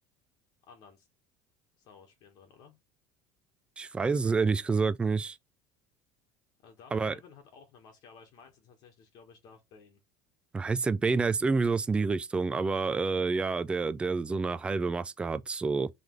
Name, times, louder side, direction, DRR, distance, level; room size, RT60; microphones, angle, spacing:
voice 1, 0.7-1.1 1.8-2.8 6.6-10.0, left 5 dB, 55° left, 1.3 m, -55 dB
voice 2, 3.8-5.4 6.9-7.1 10.5-15.9, right 4 dB, 15° right, 0.3 m, -28 dB
3.8 x 3.2 x 3.1 m
supercardioid pair, 125°, 8 cm